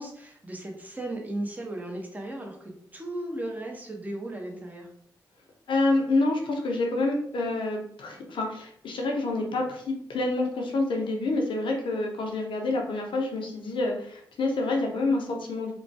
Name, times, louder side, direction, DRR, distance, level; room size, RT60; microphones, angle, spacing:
voice 1, 0.0-4.9, right 1 dB, 20° right, 1 dB, 0.9 m, -36 dB
voice 2, 5.7-15.7, left 2 dB, 75° left, 1 dB, 0.6 m, -27 dB
3.0 x 2.2 x 2.7 m, 0.64 s
supercardioid pair, 45°, 9 cm